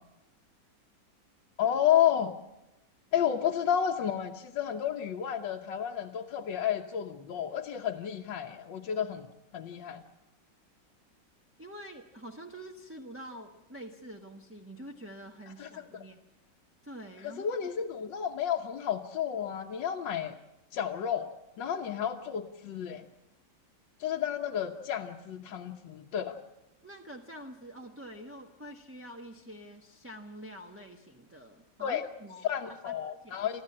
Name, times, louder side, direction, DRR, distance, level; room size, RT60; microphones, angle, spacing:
voice 1, 1.6-2.4 3.1-9.3 9.5-10.0 15.6-16.0 17.2-20.4 20.7-23.0 24.0-26.4 31.8-32.0 32.4-33.6, left 9 dB, 75° left, 1 dB, 1.6 m, -31 dB
voice 2, 11.6-16.2 16.8-17.5 26.8-32.5 32.8-32.9 33.2-33.5, equal, 10° right, 0 dB, 1.1 m, -46 dB
30.0 x 11.5 x 8.6 m, 0.95 s
omnidirectional pair, 2.0 m